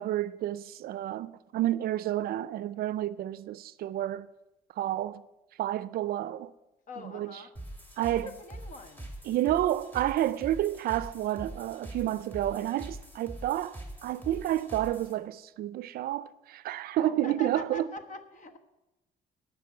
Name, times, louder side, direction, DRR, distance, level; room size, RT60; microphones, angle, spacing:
voice 1, 0.0-4.3 4.8-5.2 5.6-6.5 7.1-7.3 8.0-8.3 9.3-17.8, right 13 dB, 65° right, 0.4 m, -30 dB
voice 2, 6.9-7.5 8.0-9.1 17.0-18.6, left 1 dB, 50° left, 1.2 m, -43 dB
sound 1, 7.6-15.1, right 1 dB, 10° left, 2.2 m, -44 dB
12.0 x 6.1 x 8.6 m
cardioid pair, 110°, 17 cm